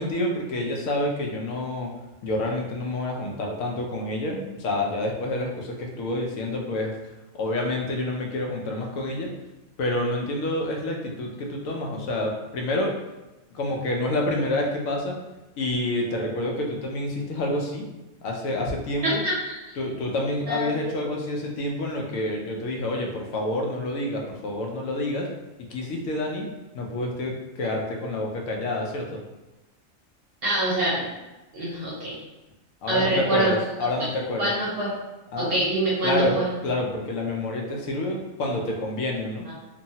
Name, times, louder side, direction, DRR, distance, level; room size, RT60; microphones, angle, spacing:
voice 1, 0.0-1.9 2.2-7.0 7.3-9.3 9.8-13.0 13.5-15.2 15.6-17.8 18.2-19.2 19.8-25.3 25.7-26.5 26.7-29.2 32.8-34.5 35.3-35.6 36.0-36.3 36.6-39.5, left 1 dB, 80° left, 0 dB, 1.0 m, -28 dB
voice 2, 19.0-19.6 20.5-20.7 30.4-31.1 31.5-32.2 32.9-33.5 34.4-34.9 35.4-36.5 39.5-39.6, right 1 dB, 55° right, -6 dB, 0.7 m, -25 dB
2.9 x 2.2 x 2.7 m, 1.0 s
omnidirectional pair, 1.4 m